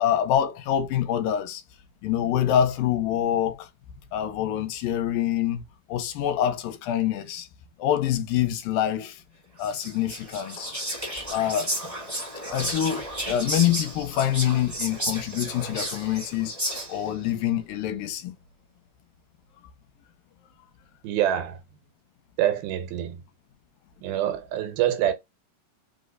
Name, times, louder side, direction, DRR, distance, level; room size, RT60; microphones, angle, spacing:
voice 1, 0.0-1.6 2.0-3.7 4.1-5.6 5.9-7.5 7.8-9.2 9.6-10.7 11.3-11.8 12.5-16.5 16.9-18.4, left 10 dB, 85° left, 2.3 m, -25 dB
Whispering, 9.6-17.2, equal, 40° right, 0.4 m, -33 dB
voice 2, 21.0-21.6 22.4-23.2 24.0-25.1, right 11 dB, 90° right, 2.6 m, -25 dB
5.5 x 2.1 x 3.8 m
omnidirectional pair, 4.1 m